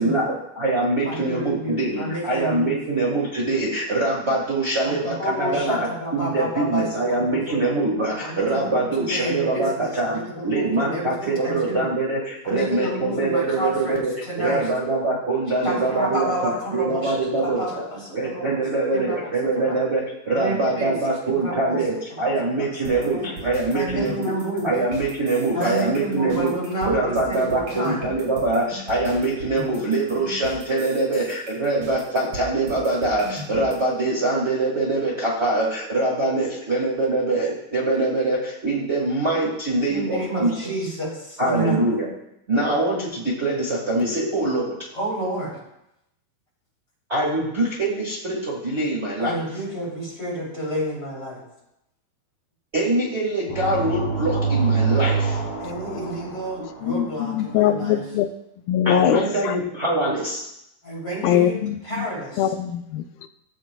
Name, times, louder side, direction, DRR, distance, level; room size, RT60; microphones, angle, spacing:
voice 1, 0.0-17.9 18.1-24.3 24.6-26.6 26.8-40.5 41.4-42.1 42.5-44.7 47.1-49.4 52.7-55.4 58.8-60.4, right 2 dB, 75° right, -6 dB, 0.6 m, -24 dB
voice 2, 1.0-2.7 4.8-7.6 8.2-11.9 12.4-14.6 15.6-18.6 18.9-19.2 19.6-19.8 20.3-20.9 21.4-21.8 22.2-22.7 23.0-23.2 23.7-24.7 25.5-28.1 39.9-41.8 44.9-45.6 49.2-51.4 55.6-58.0 60.8-62.4, right 1 dB, 25° left, -6 dB, 3.2 m, -30 dB
sound 1, 22.8-33.7, equal, 45° right, 3.6 m, -38 dB
sound 2, 53.5-57.3, right 4 dB, 55° left, 3.5 m, -25 dB
voice 3, 56.6-58.3 58.7-59.6 61.2-62.1 62.4-63.3, left 10 dB, 80° left, 8 dB, 2.2 m, -22 dB
15.0 x 7.4 x 2.3 m, 0.83 s
omnidirectional pair, 4.3 m